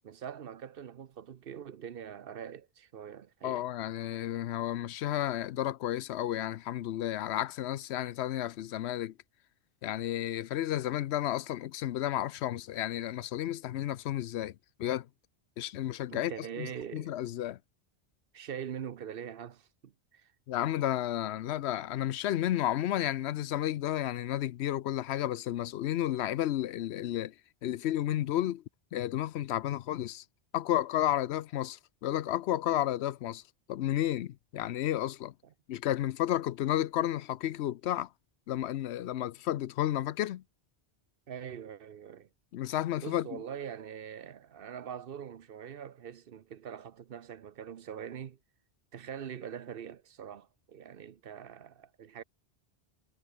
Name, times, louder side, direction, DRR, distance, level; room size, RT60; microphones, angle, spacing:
voice 1, 0.0-3.7 16.1-17.1 18.3-20.3 35.4-35.5 41.3-42.3 43.0-48.4 48.9-52.2, right 8 dB, 60° right, 0.9 m, -43 dB
voice 2, 3.4-9.1 9.8-14.5 14.8-15.1 15.6-16.3 16.6-17.6 20.5-27.3 27.6-28.6 28.9-30.2 30.5-33.4 33.7-35.3 35.7-38.1 38.5-40.4 42.5-43.4, left 12 dB, 85° left, 0.9 m, -32 dB
omnidirectional pair, 1.1 m